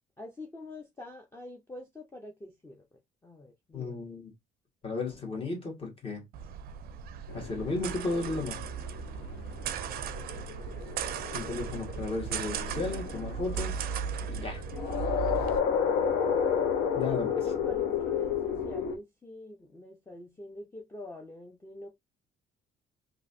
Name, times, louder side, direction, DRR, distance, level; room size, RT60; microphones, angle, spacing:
voice 1, 0.2-4.0 17.3-21.9, left 2 dB, 15° left, 0.6 m, -45 dB
voice 2, 3.7-4.3 4.8-6.2 7.3-8.6 11.3-13.8 14.2-14.6 16.9-17.4, left 3 dB, 35° left, 1.5 m, -34 dB
sound 1, 6.3-15.6, right 7 dB, 60° right, 0.4 m, -37 dB
sound 2, 7.3-18.9, left 7 dB, 85° left, 0.8 m, -32 dB
3.0 x 2.5 x 2.6 m
cardioid pair, 110°, 17 cm